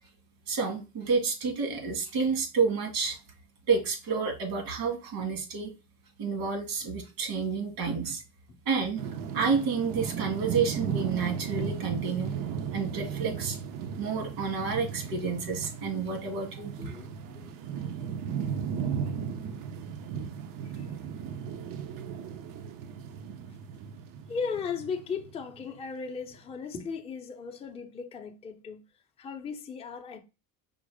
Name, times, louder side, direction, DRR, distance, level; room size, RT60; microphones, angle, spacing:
voice 1, 0.5-3.2 3.7-5.7 6.2-8.2 8.7-9.0 9.3-12.4 12.7-13.6 14.0-16.7, right 5 dB, 80° right, 2.1 m, -29 dB
sound 1, 9.0-25.8, right 7 dB, 60° right, 0.6 m, -36 dB
voice 2, 16.8-17.5 20.8-20.9 24.3-28.8 29.2-30.2, left 5 dB, 15° left, 0.5 m, -37 dB
5.1 x 2.0 x 4.7 m
cardioid pair, 155°, 38 cm